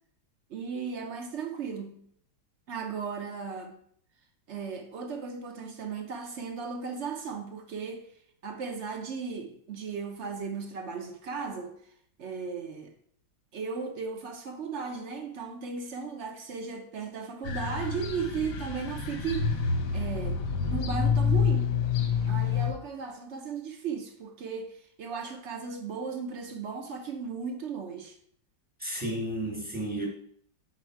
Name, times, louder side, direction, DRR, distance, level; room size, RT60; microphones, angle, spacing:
voice 1, 0.5-2.0 2.7-3.8 4.5-8.1 8.4-11.7 12.2-12.9 13.5-20.4 20.6-21.7 22.3-28.2, right 5 dB, 55° right, 0.8 m, -36 dB
sound 1, 17.4-22.7, left 6 dB, 60° left, 1.0 m, -28 dB
voice 2, 28.8-30.1, right 1 dB, 5° right, 1.3 m, -32 dB
5.8 x 4.4 x 4.6 m
omnidirectional pair, 2.0 m